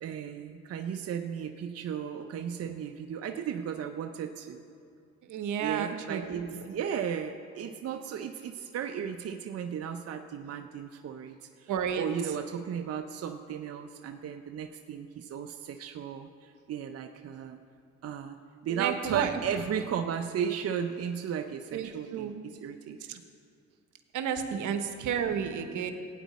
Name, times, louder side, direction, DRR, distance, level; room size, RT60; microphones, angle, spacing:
voice 1, 0.0-4.6 5.6-11.7 12.0-17.6 18.0-18.4 18.6-22.3 22.6-23.2 24.5-24.6, right 8 dB, 55° right, 5 dB, 0.6 m, -35 dB
voice 2, 5.2-6.8 11.7-12.1 18.7-19.4 21.7-22.3 23.1-23.2 24.1-25.9, right 8 dB, 80° right, 7 dB, 1.0 m, -32 dB
16.5 x 9.2 x 4.2 m, 2.4 s
cardioid pair, 90°, 30 cm